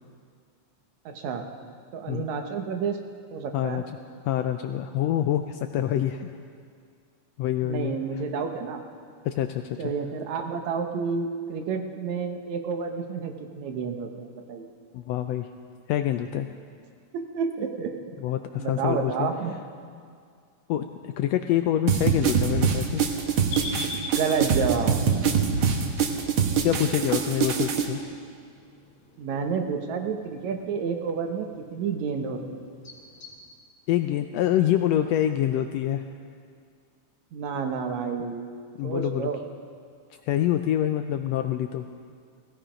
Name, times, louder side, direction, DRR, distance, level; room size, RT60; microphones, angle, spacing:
voice 1, 1.1-1.5 1.9-3.0 3.3-3.8 7.6-8.8 9.8-14.7 17.1-17.9 18.2-18.3 18.5-19.5 24.0-25.0 29.2-32.7 37.3-38.5 38.8-39.4, right 6 dB, 75° right, 5 dB, 2.3 m, -30 dB
voice 2, 3.5-3.8 4.2-6.3 7.4-8.0 9.2-9.9 14.9-15.5 15.9-16.5 18.2-19.3 20.7-23.0 23.3-23.5 26.6-28.0 33.9-36.0 38.8-39.3 40.3-41.9, left 11 dB, 80° left, 7 dB, 1.5 m, -26 dB
sound 1, 21.9-27.8, right 6 dB, 60° right, 1.6 m, -24 dB
sound 2, 23.5-33.4, left 2 dB, 55° left, 3.3 m, -44 dB
17.0 x 16.5 x 5.1 m, 2.2 s
omnidirectional pair, 3.4 m